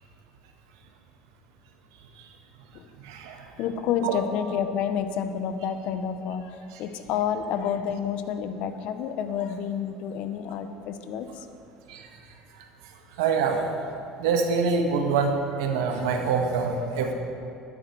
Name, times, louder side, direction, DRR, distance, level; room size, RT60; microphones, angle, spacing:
voice 1, 3.0-3.5 4.0-4.2 6.7-6.8 11.9-12.1 12.5-12.6 13.2-13.6 14.2-17.1, right 5 dB, 90° right, 3 dB, 1.4 m, -25 dB
voice 2, 3.6-11.3, left 8 dB, 65° left, 9 dB, 0.8 m, -29 dB
12.0 x 10.5 x 4.7 m, 2.8 s
supercardioid pair, 95°, 2 cm